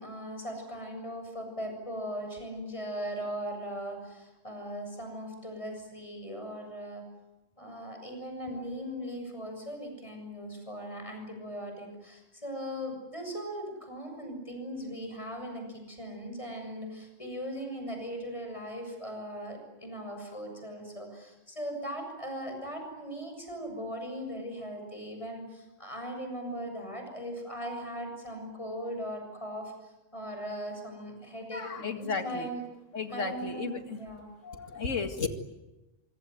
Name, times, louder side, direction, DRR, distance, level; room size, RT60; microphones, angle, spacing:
voice 1, 0.0-7.0 7.6-32.6 33.1-34.3, equal, 25° left, 4 dB, 7.3 m, -39 dB
voice 2, 31.5-32.5 32.9-34.0 34.4-35.3, left 5 dB, 75° left, 7 dB, 2.5 m, -34 dB
25.0 x 25.0 x 9.3 m, 1.0 s
omnidirectional pair, 1.3 m